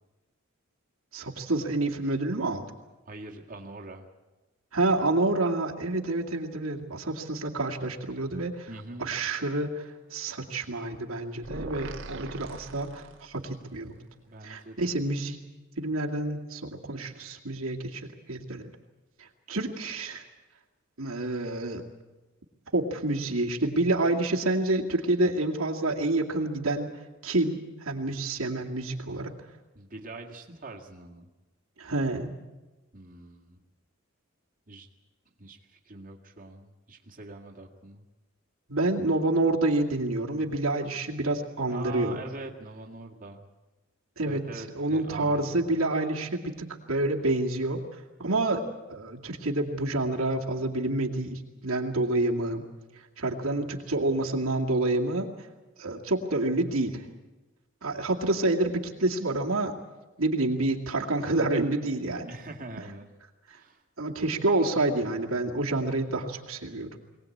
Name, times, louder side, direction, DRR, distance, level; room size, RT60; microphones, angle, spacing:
voice 1, 1.1-2.6 4.7-8.7 9.0-14.0 14.4-15.4 15.8-18.7 19.2-20.2 21.0-21.8 22.7-26.9 27.2-29.3 31.8-32.3 38.7-42.2 44.2-44.5 44.7-48.6 48.9-52.6 53.2-55.3 55.8-57.0 57.8-59.7 60.2-62.3 64.0-66.9, right 2 dB, 85° right, 0 dB, 2.4 m, -28 dB
voice 2, 3.1-4.0 8.7-9.1 14.3-14.9 29.8-31.3 32.9-33.6 34.7-34.9 35.4-38.0 41.7-43.5 44.2-45.7 62.3-63.1 63.5-63.8, right 2 dB, 40° right, -1 dB, 2.0 m, -43 dB
sound 1, 11.4-13.5, right 2 dB, 65° right, 1.7 m, -41 dB
23.0 x 18.5 x 8.6 m, 1.1 s
head